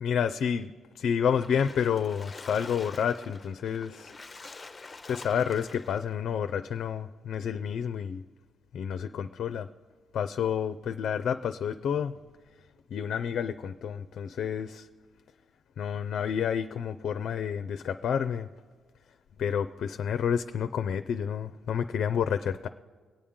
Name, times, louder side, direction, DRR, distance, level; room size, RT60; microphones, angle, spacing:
voice 1, 0.0-4.1 5.0-8.2 8.7-9.7 10.1-12.2 12.9-14.9 15.8-18.5 19.4-22.7, left 8 dB, 65° left, 0.4 m, -29 dB
Splash splatter, 1.2-6.1, left 3 dB, 25° left, 0.6 m, -46 dB
21.5 x 8.6 x 3.7 m
cardioid pair, 90°, 0 cm